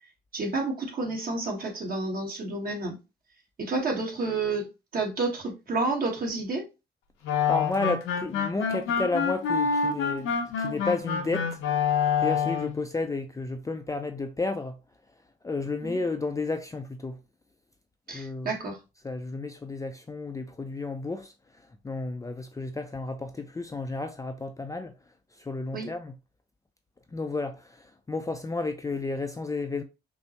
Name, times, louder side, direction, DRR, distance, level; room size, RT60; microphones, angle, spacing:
voice 1, 0.3-3.0 3.6-6.7 15.8-16.0 18.1-18.8 25.7-25.9, right 3 dB, 45° right, 1.4 m, -30 dB
sound 1, 7.2-12.8, left 6 dB, 85° left, 0.8 m, -27 dB
voice 2, 7.5-11.5 12.2-14.8 15.4-17.2 18.1-18.5 19.0-21.3 21.8-24.9 25.4-26.1 27.1-29.8, left 3 dB, 15° left, 0.4 m, -32 dB
5.4 x 2.0 x 2.9 m
cardioid pair, 90°, 20 cm